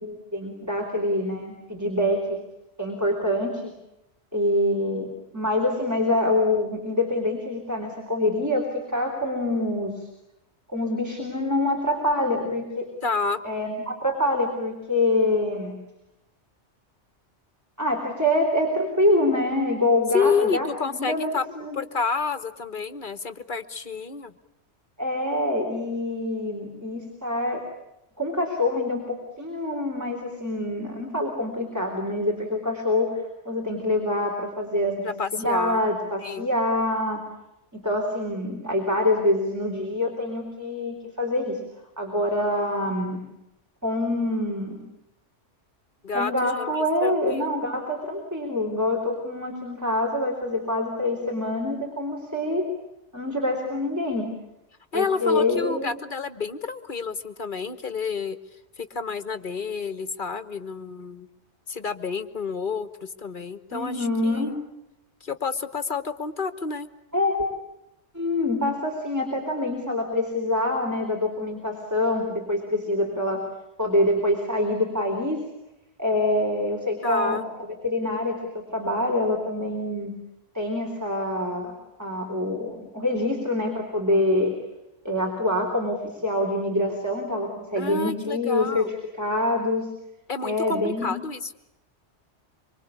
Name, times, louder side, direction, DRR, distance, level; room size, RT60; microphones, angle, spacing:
voice 1, 0.0-2.4 2.8-3.7 4.3-10.1 10.7-12.9 13.4-15.8 17.8-21.3 21.6-21.7 25.0-27.6 28.2-37.2 37.7-41.6 42.0-43.2 43.8-44.8 46.1-52.6 53.1-54.3 54.9-56.0 63.7-64.6 67.1-67.5 68.1-73.4 73.8-75.4 76.0-77.4 77.8-80.1 80.5-81.7 82.0-84.5 85.0-89.9 90.4-91.2, left 1 dB, 15° right, 1 dB, 3.9 m, -25 dB
voice 2, 13.0-13.4 20.1-21.5 21.7-24.3 35.0-35.8 36.2-36.5 46.0-47.5 54.9-58.4 58.8-61.3 61.7-64.6 65.2-66.9 77.0-77.4 87.8-88.9 90.3-91.5, left 5 dB, 45° left, 12 dB, 1.4 m, -29 dB
25.5 x 25.0 x 8.5 m, 0.89 s
omnidirectional pair, 1.2 m